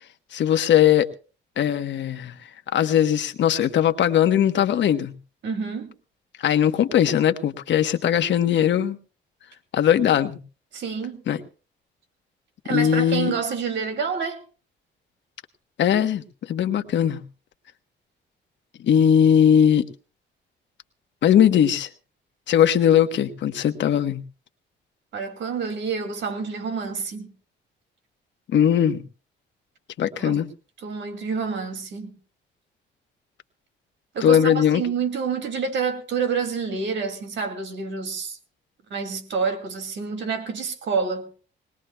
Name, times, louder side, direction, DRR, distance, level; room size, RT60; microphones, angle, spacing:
voice 1, 0.3-1.1 1.6-2.3 2.7-5.1 6.4-9.0 9.7-10.4 11.3-11.4 12.7-13.3 15.8-17.2 18.8-19.9 21.2-21.9 22.5-24.2 28.5-29.0 30.0-30.5 34.2-34.8, left 9 dB, 65° left, 1.2 m, -19 dB
voice 2, 5.4-5.9 10.7-11.2 12.6-14.4 25.1-27.3 30.2-30.4 30.8-32.1 34.1-38.4 38.9-41.3, right 5 dB, 70° right, 2.4 m, -28 dB
20.5 x 19.5 x 2.3 m
cardioid pair, 90°, 20 cm